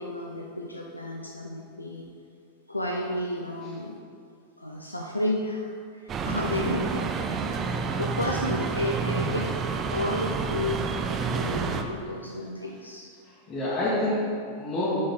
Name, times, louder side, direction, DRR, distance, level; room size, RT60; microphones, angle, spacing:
voice 1, 0.0-2.1 2.7-4.0 4.6-7.0 7.3-7.5 8.0-9.5 9.9-10.9 11.1-13.1, left 1 dB, 85° left, 0 dB, 0.5 m, -32 dB
sound 1, 6.1-11.8, right 5 dB, 25° right, 0.4 m, -29 dB
voice 2, 13.2-15.0, left 1 dB, 25° left, -10 dB, 1.6 m, -28 dB
6.5 x 5.4 x 3.8 m, 2.3 s
figure-of-eight pair, 90°, 0 cm